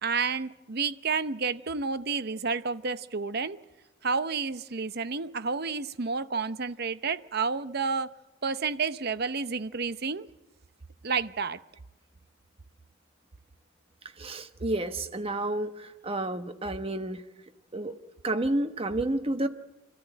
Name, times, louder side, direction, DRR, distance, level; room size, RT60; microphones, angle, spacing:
voice 1, 0.0-3.6 4.0-8.1 8.4-10.3 11.0-11.6, right 5 dB, 50° right, 13 dB, 0.8 m, -30 dB
voice 2, 14.2-17.2 17.7-17.9 18.2-19.5, right 1 dB, 25° right, 8 dB, 1.1 m, -30 dB
26.0 x 13.5 x 9.0 m, 1.1 s
head